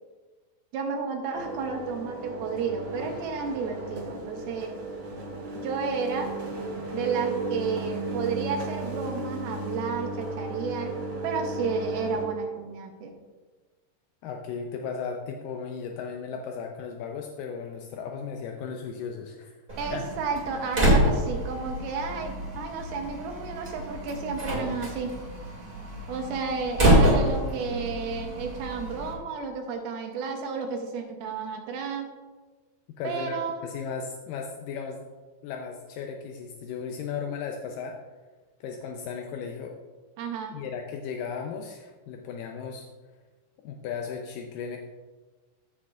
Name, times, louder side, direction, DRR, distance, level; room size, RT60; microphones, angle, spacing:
voice 1, 0.7-4.8 5.6-6.3 6.9-10.9 11.2-13.2 19.8-25.2 26.1-32.1 33.0-33.6 40.2-40.6, right 5 dB, 80° right, 2 dB, 2.7 m, -32 dB
sound 1, 1.3-12.2, right 2 dB, 45° right, 1.8 m, -34 dB
voice 2, 14.2-19.6 19.9-20.0 33.0-35.0 35.4-38.0 38.6-39.8 40.5-42.9 43.6-44.8, left 6 dB, 85° left, 2 dB, 2.0 m, -36 dB
Slam, 19.7-29.1, right 1 dB, 20° right, 1.4 m, -27 dB
14.5 x 6.5 x 2.4 m, 1.3 s
omnidirectional pair, 4.4 m